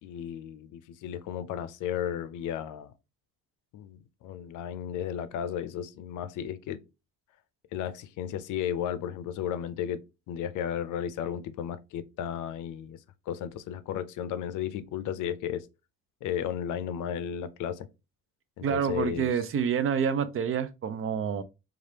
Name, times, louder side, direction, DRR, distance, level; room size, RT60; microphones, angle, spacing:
voice 1, 0.0-2.9 3.7-6.8 7.7-10.0 10.3-13.0 13.3-15.7 16.2-17.9 18.6-19.3, left 9 dB, 85° left, 0.5 m, -34 dB
voice 2, 18.6-21.4, right 7 dB, 45° right, 0.5 m, -28 dB
3.2 x 2.4 x 2.8 m
cardioid pair, 90°, 30 cm